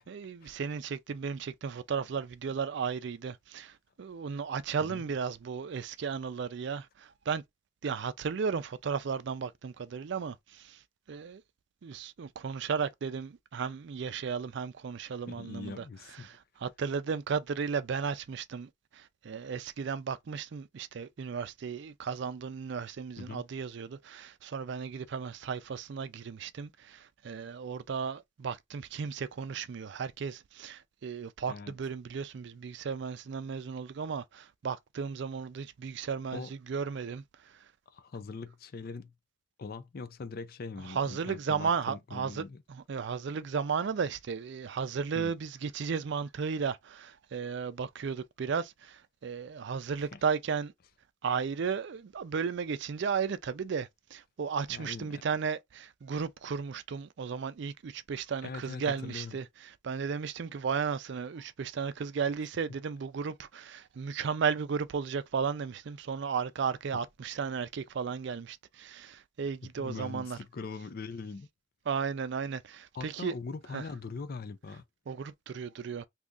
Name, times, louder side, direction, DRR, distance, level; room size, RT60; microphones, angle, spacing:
voice 1, 0.1-7.4 7.8-10.8 11.1-11.4 11.8-15.8 16.2-37.2 40.8-50.7 51.2-70.4 71.9-73.3 73.7-73.8 75.1-76.1, right 6 dB, 60° right, 0.4 m, -34 dB
voice 2, 15.3-16.3 23.2-23.4 31.5-31.8 36.3-36.5 37.9-39.1 39.6-42.6 45.1-45.3 50.1-50.2 54.7-55.2 58.4-59.4 69.8-71.5 72.9-74.8, left 4 dB, 45° left, 0.4 m, -41 dB
2.7 x 2.5 x 3.5 m
head